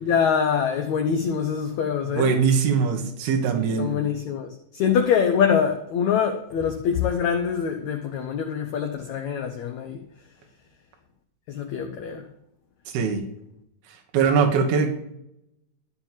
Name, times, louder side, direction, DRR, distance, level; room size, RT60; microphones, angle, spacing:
voice 1, 0.0-2.3 3.5-10.0 11.5-12.2, left 7 dB, 85° left, 1.6 m, -24 dB
voice 2, 2.2-4.0 12.9-13.2 13.9-14.9, right 6 dB, 80° right, 3.2 m, -22 dB
13.5 x 4.7 x 7.3 m
omnidirectional pair, 4.4 m